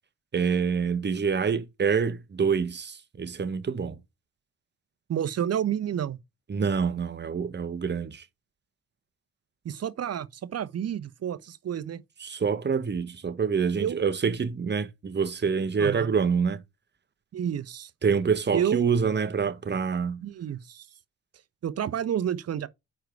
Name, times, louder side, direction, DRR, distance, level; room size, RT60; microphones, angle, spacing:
voice 1, 0.3-4.0 6.5-8.2 12.2-16.6 18.0-20.2, right 6 dB, 30° right, 1.3 m, -26 dB
voice 2, 5.1-6.2 9.6-12.0 13.8-14.0 15.8-16.1 17.3-17.9 18.5-18.8 20.2-20.9 21.6-22.7, right 9 dB, 45° right, 1.0 m, -30 dB
4.7 x 4.6 x 6.0 m
supercardioid pair, 70°, 33 cm